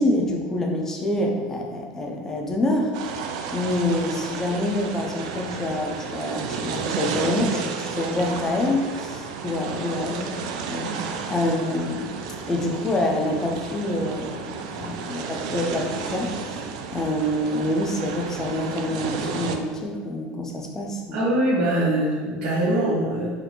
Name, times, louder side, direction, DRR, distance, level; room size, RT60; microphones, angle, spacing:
voice 1, 0.0-3.2 3.5-12.2 12.5-16.6 16.9-21.2, left 1 dB, 15° left, 1 dB, 0.4 m, -26 dB
sound 1, 2.9-19.6, right 5 dB, 90° right, 0.4 m, -32 dB
voice 2, 21.1-23.3, right 1 dB, 55° right, -9 dB, 1.3 m, -22 dB
5.1 x 2.5 x 2.9 m, 1.5 s
cardioid pair, 170°, 3 cm